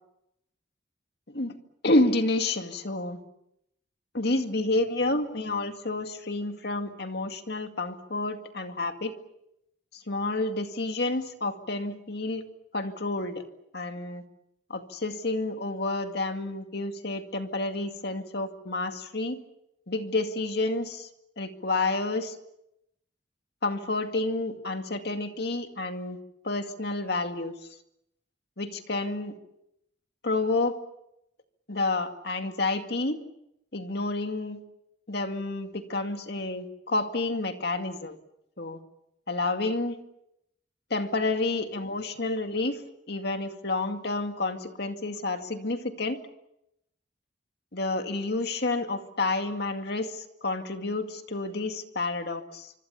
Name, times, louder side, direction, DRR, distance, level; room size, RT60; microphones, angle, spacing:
voice 1, 1.8-3.2 4.1-9.1 9.9-12.4 12.7-13.4 13.7-14.2 14.7-19.4 19.9-21.1 21.4-22.4 23.6-26.2 26.4-27.5 28.6-29.4 30.2-30.8 31.7-33.2 33.7-34.6 35.1-38.2 38.6-38.8 39.3-40.0 40.9-42.8 43.1-46.2 47.7-52.7, left 2 dB, 60° left, 6 dB, 2.2 m, -29 dB
25.5 x 25.5 x 7.1 m, 0.82 s
head